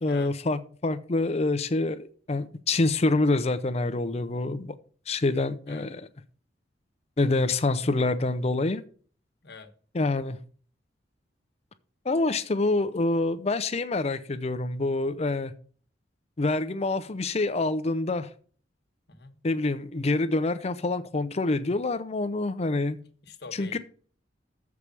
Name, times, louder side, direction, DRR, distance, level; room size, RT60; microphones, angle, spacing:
voice 1, 0.0-4.7 5.1-6.0 7.2-8.8 9.9-10.4 12.0-15.5 16.4-18.3 19.4-23.0 23.6-23.8, left 2 dB, 35° left, 0.5 m, -26 dB
voice 2, 23.2-23.8, left 4 dB, 65° left, 1.3 m, -44 dB
7.2 x 4.8 x 6.8 m
head